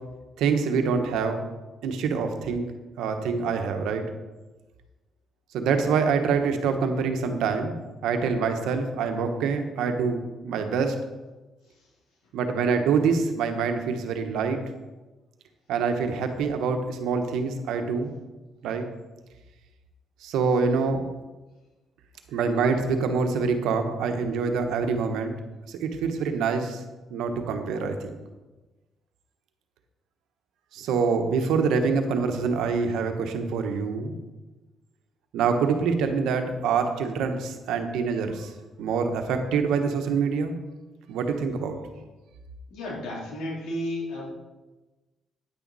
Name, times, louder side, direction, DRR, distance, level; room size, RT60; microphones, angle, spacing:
voice 1, 0.4-1.5 1.8-2.7 3.0-4.0 5.5-7.7 8.0-11.0 12.3-14.6 15.7-18.1 18.6-18.8 20.2-21.0 22.3-25.3 25.8-26.8 27.1-28.2 30.7-34.2 35.3-38.5 38.8-40.6 41.1-41.8, right 5 dB, 90° right, 6 dB, 1.2 m, -25 dB
voice 2, 42.7-44.2, left 1 dB, 90° left, -4 dB, 3.5 m, -32 dB
9.8 x 9.3 x 4.2 m, 1.2 s
cardioid pair, 90°, 0 cm